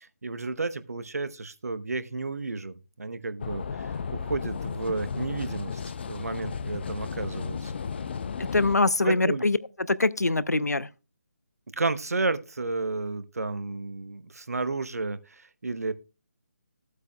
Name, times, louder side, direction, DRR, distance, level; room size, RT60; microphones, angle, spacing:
voice 1, 0.0-5.8 6.1-7.7 9.0-9.4 11.8-15.9, right 3 dB, 65° right, 0.9 m, -32 dB
sound 1, 3.4-8.8, left 6 dB, 40° left, 0.5 m, -34 dB
voice 2, 8.4-9.6 9.9-10.9, left 2 dB, 80° left, 0.6 m, -23 dB
15.0 x 8.2 x 2.3 m
figure-of-eight pair, 150°, 9 cm